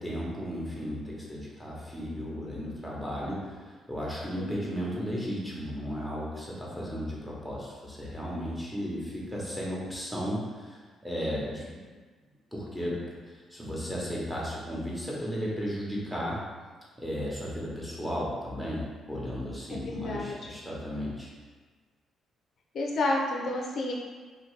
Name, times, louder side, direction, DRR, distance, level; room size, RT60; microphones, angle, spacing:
voice 1, 0.0-11.8 12.5-16.4 17.0-21.3, equal, 5° right, -5 dB, 1.0 m, -35 dB
voice 2, 4.4-4.9 19.7-20.5 22.7-23.9, left 2 dB, 60° left, -1 dB, 0.4 m, -31 dB
2.7 x 2.7 x 3.1 m, 1.4 s
cardioid pair, 90°, 0 cm